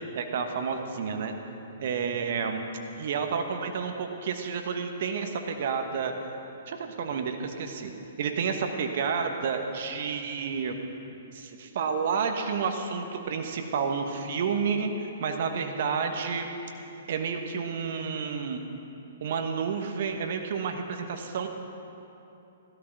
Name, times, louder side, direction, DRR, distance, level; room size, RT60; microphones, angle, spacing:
voice 1, 0.1-1.3 1.8-2.6 3.0-6.1 6.7-7.9 8.2-10.8 11.3-16.5 17.1-18.6 19.2-21.5, right 6 dB, 55° right, 5 dB, 1.3 m, -30 dB
16.0 x 12.5 x 6.0 m, 2.9 s
figure-of-eight pair, 120°, 0 cm